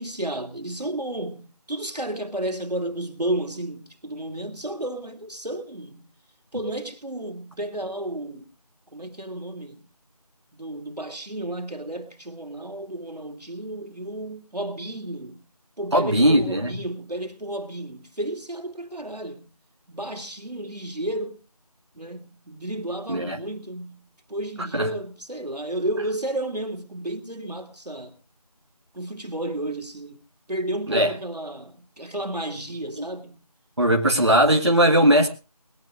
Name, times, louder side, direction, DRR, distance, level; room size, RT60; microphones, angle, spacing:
voice 1, 0.0-6.1 6.5-8.5 8.9-9.9 10.5-15.4 15.8-19.5 19.9-21.4 21.9-28.2 28.9-30.2 30.5-33.4, right 1 dB, 85° right, 2.7 m, -32 dB
voice 2, 15.9-16.8 23.1-23.4 24.7-24.9 30.9-31.1 33.8-35.3, equal, 45° right, 1.6 m, -19 dB
20.5 x 17.0 x 2.5 m
figure-of-eight pair, 175°, 20 cm